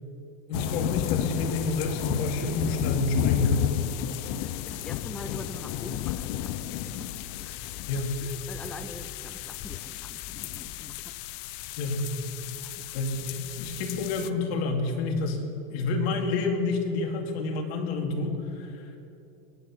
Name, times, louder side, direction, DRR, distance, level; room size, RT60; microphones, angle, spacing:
voice 1, 0.5-3.7 7.9-8.2 11.8-12.1 12.9-15.5 15.7-18.9, left 3 dB, 65° left, 3 dB, 2.5 m, -28 dB
sound 1, 0.5-14.3, left 13 dB, 50° left, 0.6 m, -33 dB
voice 2, 4.4-7.7 8.2-11.1 12.5-12.9, left 2 dB, 5° left, 9 dB, 0.4 m, -44 dB
22.0 x 9.1 x 6.1 m, 2.8 s
supercardioid pair, 145°, 33 cm